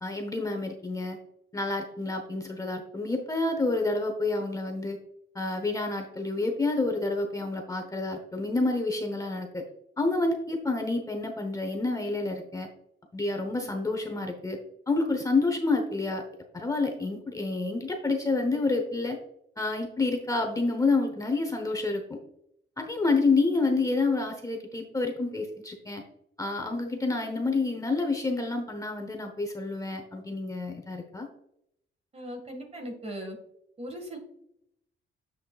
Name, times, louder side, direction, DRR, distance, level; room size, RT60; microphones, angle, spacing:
voice 1, 0.0-1.2 1.5-5.0 5.3-9.6 10.0-12.7 13.1-14.6 14.9-16.2 16.5-19.2 19.6-22.2 22.8-26.0 26.4-31.3, left 3 dB, 15° left, 3 dB, 0.9 m, -28 dB
voice 2, 32.1-33.4 33.8-34.2, equal, 30° right, 4 dB, 1.8 m, -38 dB
7.6 x 6.4 x 2.4 m, 0.74 s
cardioid pair, 120°, 20 cm